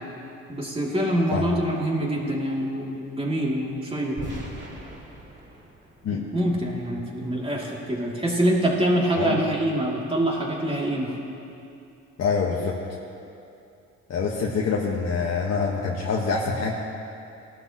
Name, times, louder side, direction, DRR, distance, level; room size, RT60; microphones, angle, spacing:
voice 1, 0.5-4.2 6.1-11.2, right 1 dB, 20° right, -3 dB, 2.7 m, -25 dB
sound 1, 4.2-7.1, right 1 dB, 35° right, 2.7 m, -40 dB
voice 2, 12.2-12.7 14.1-16.7, left 5 dB, 60° left, -4 dB, 1.4 m, -25 dB
18.5 x 12.0 x 3.0 m, 2.7 s
cardioid pair, 90°, 30 cm